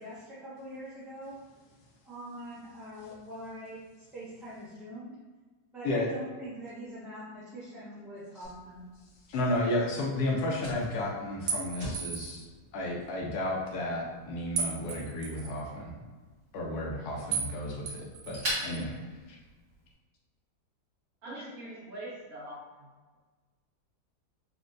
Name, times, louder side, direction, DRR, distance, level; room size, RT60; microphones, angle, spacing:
voice 1, 0.0-1.4 2.0-5.2 5.7-8.8 21.2-21.4 21.6-21.8, equal, ahead, -10 dB, 0.4 m, -44 dB
Fire, 8.4-19.9, right 1 dB, 35° right, 1.2 m, -44 dB
voice 2, 9.3-12.4 12.7-16.0 16.5-18.9, left 1 dB, 75° left, -1 dB, 1.1 m, -32 dB
sound 1, 11.5-12.4 14.6-15.5 17.3-17.5 17.9-18.8, right 6 dB, 85° right, 1.3 m, -35 dB
voice 3, 21.2-22.9, right 1 dB, 60° right, -7 dB, 1.4 m, -43 dB
4.1 x 2.1 x 2.5 m, 1.3 s
omnidirectional pair, 1.8 m